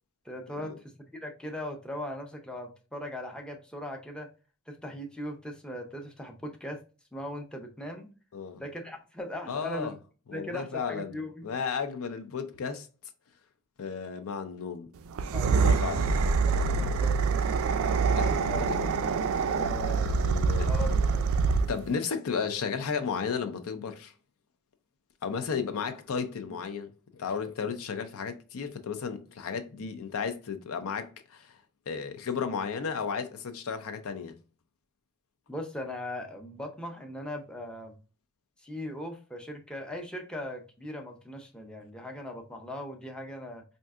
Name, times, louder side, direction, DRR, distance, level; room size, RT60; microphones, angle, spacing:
voice 1, 0.2-4.3 4.7-6.8 7.1-8.1 8.6-9.9 10.3-11.5 15.3-16.0 16.5-17.6 18.4-18.6 19.6-20.3 20.7-21.2 35.5-37.9 38.6-43.6, left 1 dB, 5° left, 0.5 m, -39 dB
voice 2, 9.5-9.9 10.3-12.9 13.8-14.9 15.5-16.1 18.1-18.8 19.3-19.4 19.8-20.7 21.7-24.1 25.2-31.6 31.9-34.3, left 6 dB, 70° left, 0.5 m, -34 dB
sound 1, 15.1-21.9, right 4 dB, 65° right, 0.4 m, -25 dB
4.3 x 2.7 x 2.3 m
head